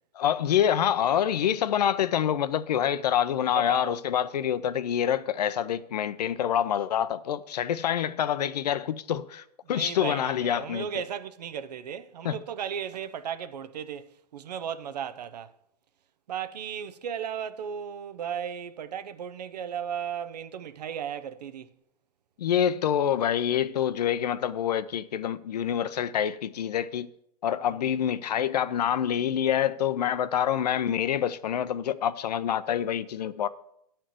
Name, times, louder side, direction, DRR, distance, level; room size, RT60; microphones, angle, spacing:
voice 1, 0.2-11.0 12.2-12.4 22.4-27.1 27.4-33.5, left 9 dB, 75° left, 0.6 m, -26 dB
voice 2, 3.5-4.0 9.6-15.5 16.3-21.7, right 8 dB, 80° right, 0.8 m, -35 dB
10.0 x 4.4 x 7.6 m
hypercardioid pair, 150°, 21 cm